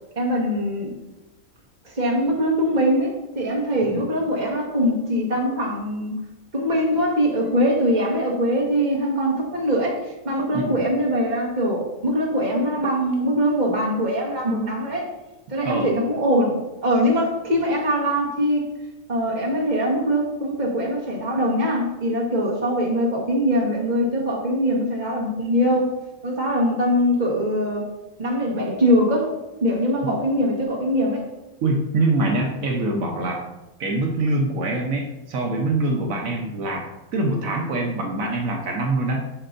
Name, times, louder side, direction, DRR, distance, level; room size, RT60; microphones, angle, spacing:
voice 1, 0.1-0.9 1.8-6.2 6.5-15.1 15.5-18.7 19.1-25.9 26.2-27.8 28.2-29.3 29.6-31.2, equal, 35° right, -3 dB, 1.5 m, -22 dB
voice 2, 31.6-33.4 33.8-36.8 37.1-39.2, right 2 dB, 75° right, 1 dB, 1.2 m, -24 dB
8.7 x 6.6 x 2.6 m, 1.0 s
omnidirectional pair, 1.4 m